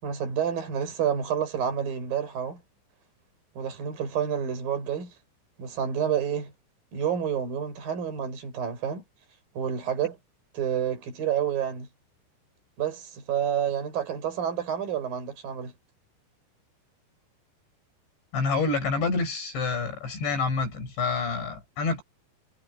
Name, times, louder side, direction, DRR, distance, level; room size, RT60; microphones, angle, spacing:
voice 1, 0.0-2.6 3.6-5.1 5.6-6.5 6.9-9.0 9.6-10.2 10.5-11.9 12.8-15.7, right 8 dB, 50° right, 7.6 m, -29 dB
voice 2, 18.3-22.0, left 4 dB, 65° left, 7.6 m, -27 dB
omnidirectional pair, 5.5 m